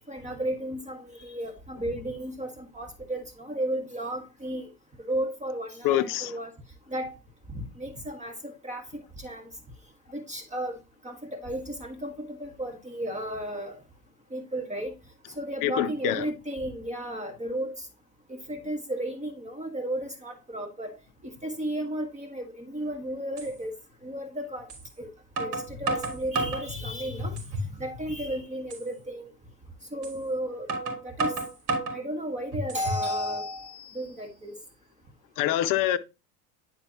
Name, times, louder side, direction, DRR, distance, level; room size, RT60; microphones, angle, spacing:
voice 1, 0.1-4.7 5.1-6.5 6.9-7.1 7.5-8.9 9.2-9.5 10.1-10.8 11.0-13.8 14.3-14.9 15.3-17.7 18.3-20.9 21.2-23.7 24.0-24.7 25.0-25.1 25.4-27.4 27.8-29.3 29.9-30.7 31.0-31.3 31.9-34.6, right 1 dB, 15° right, 1.6 m, -33 dB
voice 2, 5.8-6.3 15.6-16.3 35.4-36.0, left 12 dB, 40° left, 0.8 m, -25 dB
sound 1, 22.8-22.9 23.4-23.5 24.7-24.8 25.4-26.7 27.2-27.7 28.1-28.2 28.7-28.9 30.0-30.2 30.7-32.0 32.5-33.1, right 2 dB, 50° right, 3.7 m, -31 dB
10.5 x 4.5 x 2.9 m
hypercardioid pair, 80°, 49 cm